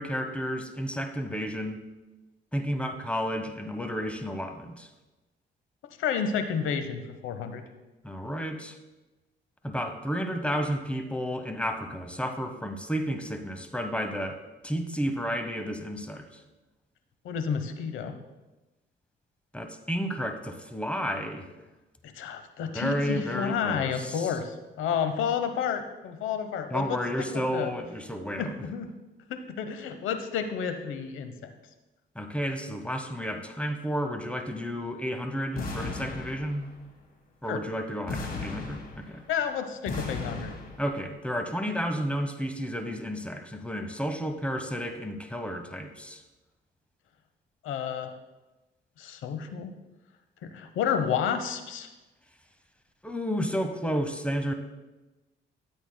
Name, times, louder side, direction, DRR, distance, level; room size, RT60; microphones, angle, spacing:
voice 1, 0.0-1.8 2.5-4.9 8.0-8.8 9.6-16.3 19.5-21.5 22.7-24.3 26.7-28.6 32.1-36.7 37.4-39.2 40.8-46.2 53.0-54.5, equal, 5° left, 6 dB, 0.9 m, -32 dB
voice 2, 6.0-7.6 17.2-18.1 22.2-27.3 27.5-27.7 28.4-28.9 29.3-31.5 37.5-37.6 39.3-40.5 47.6-48.1 49.0-49.7 50.4-51.9, left 7 dB, 85° left, 8 dB, 0.9 m, -30 dB
sound 1, 35.6-36.8 38.1-39.3 39.9-41.0, left 3 dB, 50° left, 2.0 m, -36 dB
13.0 x 8.1 x 2.2 m, 1.1 s
cardioid pair, 90°, 20 cm